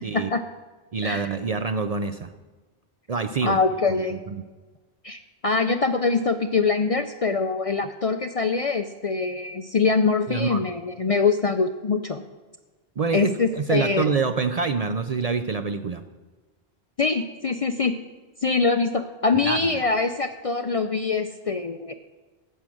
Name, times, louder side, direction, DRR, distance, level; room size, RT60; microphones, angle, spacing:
voice 1, 0.1-0.4 1.0-1.3 3.4-4.2 5.0-12.2 13.1-14.1 17.0-17.9 18.4-21.9, left 4 dB, 45° left, 8 dB, 0.5 m, -24 dB
voice 2, 0.9-2.3 3.1-3.6 4.1-4.4 10.3-10.6 13.0-16.0 19.4-19.6, right 5 dB, 50° right, 8 dB, 0.5 m, -26 dB
11.0 x 7.2 x 7.7 m, 1.3 s
omnidirectional pair, 1.1 m